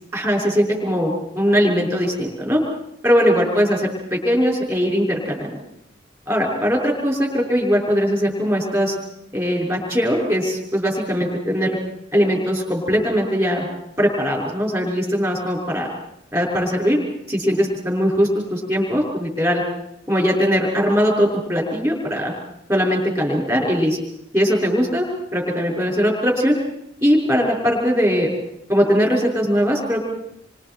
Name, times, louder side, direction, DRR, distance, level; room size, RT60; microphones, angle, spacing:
voice 1, 0.1-2.6 3.0-5.5 6.3-9.0 9.3-11.8 12.1-13.7 14.0-15.9 16.3-17.0 17.3-19.6 20.1-22.3 22.7-24.0 24.3-25.1 25.3-26.6 27.0-28.3 28.7-30.0, equal, 15° right, -2 dB, 6.0 m, -20 dB
28.0 x 25.5 x 4.6 m, 0.75 s
head